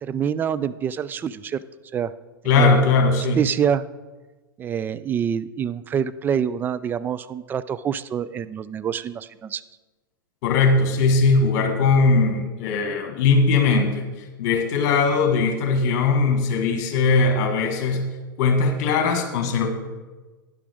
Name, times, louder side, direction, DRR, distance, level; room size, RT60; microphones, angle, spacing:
voice 1, 0.0-1.6 1.9-2.1 2.5-2.7 3.4-3.9 4.6-9.6, right 8 dB, 15° right, 14 dB, 0.3 m, -26 dB
voice 2, 2.4-3.4 10.4-18.0 18.4-19.7, left 4 dB, 45° left, 6 dB, 1.6 m, -20 dB
11.5 x 10.0 x 3.5 m, 1.2 s
figure-of-eight pair, 95°, 11 cm